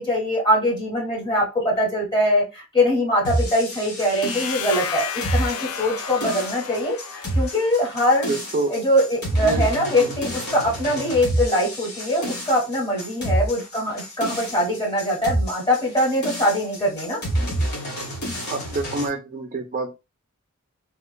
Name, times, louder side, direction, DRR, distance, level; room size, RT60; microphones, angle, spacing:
voice 1, 0.0-8.3 8.7-17.2, equal, 20° left, -2 dB, 1.0 m, -22 dB
sound 1, 3.2-19.1, right 1 dB, 45° left, 1.2 m, -28 dB
sound 2, 4.1-7.9, left 7 dB, 75° left, 0.4 m, -32 dB
voice 2, 8.3-8.7 9.4-9.7 10.0-10.1 13.3-13.4 18.4-19.9, right 3 dB, 35° right, 4 dB, 0.4 m, -27 dB
2.9 x 2.3 x 2.2 m, 0.26 s
head